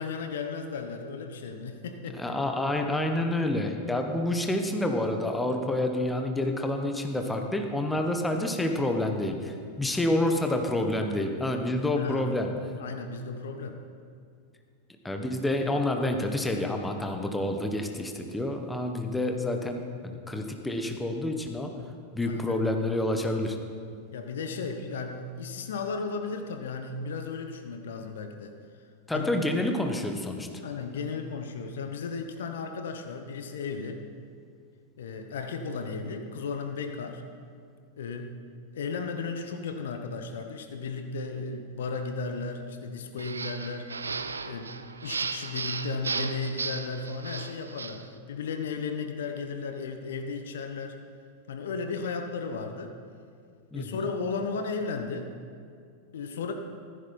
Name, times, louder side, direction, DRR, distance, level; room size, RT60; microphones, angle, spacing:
voice 1, 0.0-2.3 12.0-12.3 12.8-13.8 22.2-22.6 24.1-28.5 29.1-29.5 30.6-34.0 35.0-37.2 38.0-38.3 38.7-43.9 44.5-51.0 51.5-53.0 53.7-55.3 56.1-56.5, left 4 dB, 60° left, 6 dB, 1.1 m, -35 dB
voice 2, 2.2-12.5 15.0-21.7 22.1-23.6 29.1-30.5 53.7-54.0, left 1 dB, 5° left, 4 dB, 1.4 m, -28 dB
sound 1, 43.2-48.1, right 4 dB, 75° right, 0.5 m, -35 dB
15.0 x 14.0 x 4.4 m, 2.3 s
figure-of-eight pair, 90°, 0 cm